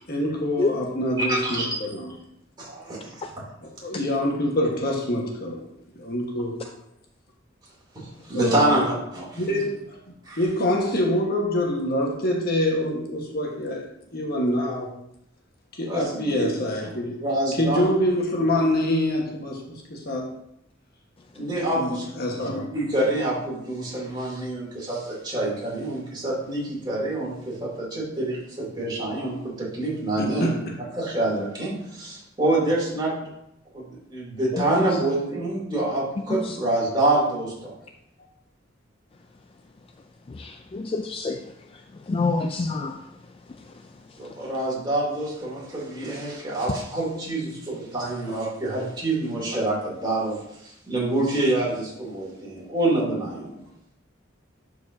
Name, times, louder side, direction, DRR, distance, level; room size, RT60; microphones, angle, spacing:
voice 1, 0.1-2.1 3.8-5.7 6.0-6.6 8.3-8.7 9.4-10.0 10.4-13.8 14.1-14.9 15.8-17.2 17.5-19.6 19.9-20.3 21.5-22.7 30.2-30.8, left 1 dB, 55° left, 0 dB, 1.4 m, -25 dB
voice 2, 1.3-1.7 2.6-3.1 8.3-9.4 10.3-10.4 15.9-16.5 17.2-17.9 21.3-22.1 22.4-30.5 31.0-33.1 33.7-37.7 44.2-50.4 50.6-53.6, right 2 dB, 25° right, -6 dB, 3.0 m, -26 dB
voice 3, 40.3-41.4 42.1-42.9, left 3 dB, 30° left, 6 dB, 0.3 m, -26 dB
11.5 x 4.8 x 2.7 m, 0.79 s
head